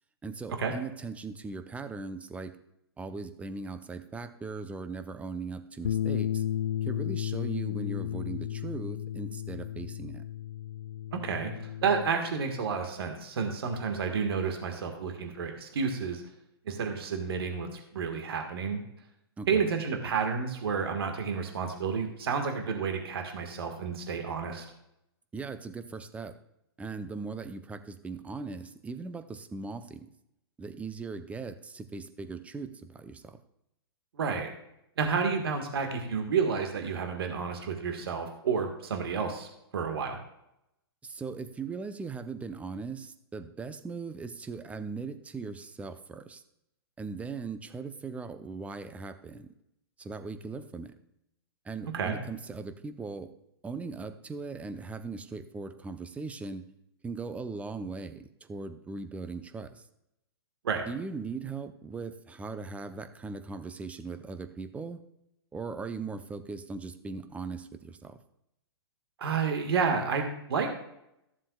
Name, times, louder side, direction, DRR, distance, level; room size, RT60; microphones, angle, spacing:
voice 1, 0.2-2.6 3.0-6.4 6.8-10.2 19.4-19.7 25.3-26.3 26.8-30.1 30.6-33.4 41.0-46.4 47.0-49.5 50.0-50.9 51.6-53.3 53.6-56.6 57.0-59.8 60.9-65.0 65.5-68.2, right 4 dB, 10° right, 9 dB, 0.6 m, -39 dB
Bass guitar, 5.8-12.1, left 11 dB, 70° left, 0.6 m, -33 dB
voice 2, 11.1-11.5 11.8-16.2 16.6-18.8 19.5-24.6 34.1-34.5 35.0-40.2 51.9-52.2 60.6-60.8 69.2-70.7, right 5 dB, 65° right, 4 dB, 1.6 m, -30 dB
14.5 x 7.4 x 2.3 m, 0.82 s
hypercardioid pair, 120°, 13 cm